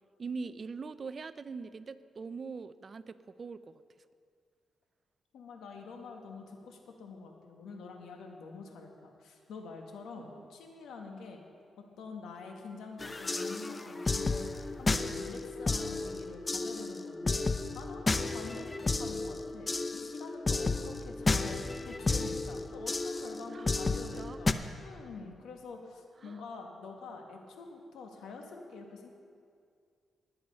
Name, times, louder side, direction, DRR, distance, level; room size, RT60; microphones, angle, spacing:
voice 1, 0.2-3.8 10.2-10.5 23.5-24.4 26.2-26.4, right 4 dB, 45° right, 13 dB, 0.5 m, -42 dB
voice 2, 5.3-11.4 11.8-14.5 14.8-17.5 17.7-29.1, left 4 dB, 90° left, 2 dB, 1.7 m, -46 dB
sound 1, 13.0-24.5, left 3 dB, 25° left, 0.6 m, -33 dB
20.0 x 7.9 x 5.5 m, 2.2 s
cardioid pair, 90°, 0 cm